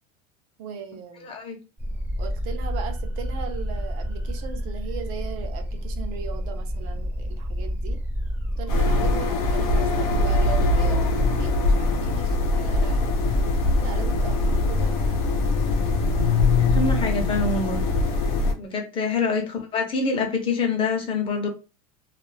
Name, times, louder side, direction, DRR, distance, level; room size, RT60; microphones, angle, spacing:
voice 1, 0.6-1.4 2.2-8.0 8.6-13.1 13.8-15.2 19.0-19.3, right 7 dB, 60° right, 6 dB, 0.6 m, -38 dB
voice 2, 1.2-1.6 16.6-17.8 18.6-21.5, left 4 dB, 30° left, 3 dB, 0.7 m, -26 dB
sound 1, 1.8-17.1, equal, 10° right, 0.6 m, -29 dB
sound 2, 8.7-18.5, left 3 dB, 75° left, 0.6 m, -22 dB
2.4 x 2.1 x 3.1 m, 0.30 s
supercardioid pair, 140°, 19 cm